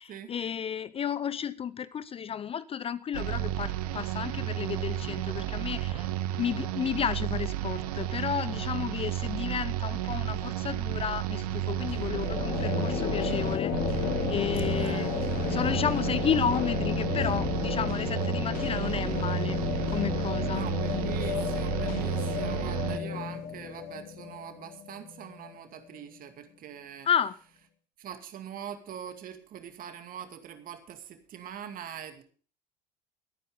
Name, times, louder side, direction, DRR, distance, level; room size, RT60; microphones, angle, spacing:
voice 1, 0.0-6.1 6.4-15.1 15.5-19.6 19.9-20.6 27.1-27.3, left 8 dB, 25° left, 17 dB, 0.6 m, -32 dB
sound 1, 3.1-23.0, right 13 dB, 65° right, 1.0 m, -32 dB
sound 2, 11.9-25.6, left 8 dB, 45° left, 1.9 m, -32 dB
voice 2, 14.8-15.1 20.5-27.1 28.0-32.2, right 9 dB, 45° right, 8 dB, 2.3 m, -43 dB
21.0 x 9.4 x 3.7 m, 0.41 s
figure-of-eight pair, 65°, 21 cm